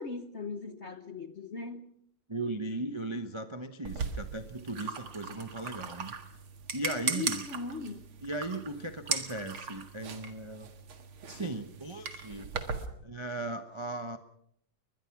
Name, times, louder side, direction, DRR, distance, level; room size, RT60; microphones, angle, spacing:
voice 1, 0.0-1.9 7.1-8.1, left 3 dB, 45° left, 0.9 m, -39 dB
voice 2, 2.3-6.2 6.7-7.4 8.2-10.7 11.3-12.5 13.0-14.2, right 2 dB, 30° right, 0.5 m, -37 dB
sound 1, 3.9-12.9, right 5 dB, 70° right, 2.7 m, -38 dB
22.5 x 21.0 x 6.0 m
omnidirectional pair, 2.4 m